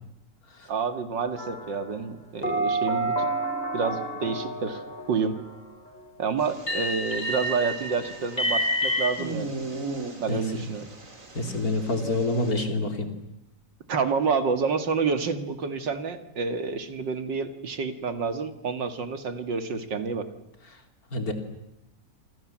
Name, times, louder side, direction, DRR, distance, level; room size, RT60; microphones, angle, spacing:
voice 1, 0.7-3.3 3.7-4.8 5.1-5.4 6.2-9.5 10.2-10.9 13.9-20.3, right 5 dB, 80° right, 9 dB, 2.6 m, -28 dB
sound 1, 1.4-1.9 2.4-5.5 6.7-9.1, right 1 dB, 25° left, 3.6 m, -29 dB
sound 2, 6.4-12.5, right 3 dB, 45° right, 4.0 m, -39 dB
voice 2, 11.4-13.1 21.1-21.3, left 2 dB, 55° left, 6 dB, 3.6 m, -26 dB
27.5 x 25.5 x 7.5 m, 0.82 s
omnidirectional pair, 1.9 m